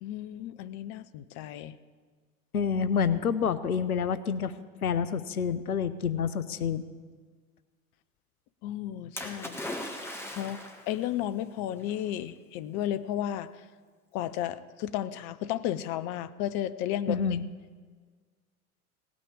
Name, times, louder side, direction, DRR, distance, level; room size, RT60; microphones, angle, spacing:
voice 1, 0.0-1.7 8.6-9.6 10.4-10.6 10.9-13.5 14.1-17.2, left 12 dB, 40° left, 13 dB, 0.6 m, -33 dB
voice 2, 2.5-4.5 4.8-6.9 17.1-17.4, left 6 dB, 80° left, 14 dB, 0.7 m, -28 dB
Splash splatter, 9.2-11.0 11.9-12.0, left 1 dB, 5° left, 1.6 m, -38 dB
17.0 x 6.1 x 8.6 m, 1.5 s
figure-of-eight pair, 75°, 43 cm